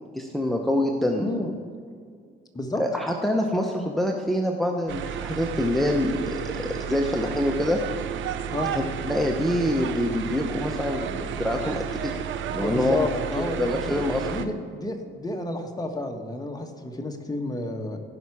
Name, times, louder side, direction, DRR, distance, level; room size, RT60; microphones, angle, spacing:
voice 1, 0.1-1.3 2.7-7.8 8.7-12.1 12.5-13.1 13.4-14.3, left 1 dB, ahead, 1 dB, 0.8 m, -26 dB
voice 2, 1.2-1.5 2.5-2.8 8.5-8.7 12.6-14.0 14.2-18.0, left 2 dB, 20° left, 4 dB, 1.3 m, -31 dB
sound 1, 4.9-14.4, right 8 dB, 75° right, 0.7 m, -32 dB
15.5 x 5.8 x 4.8 m, 2.1 s
cardioid pair, 90°, 20 cm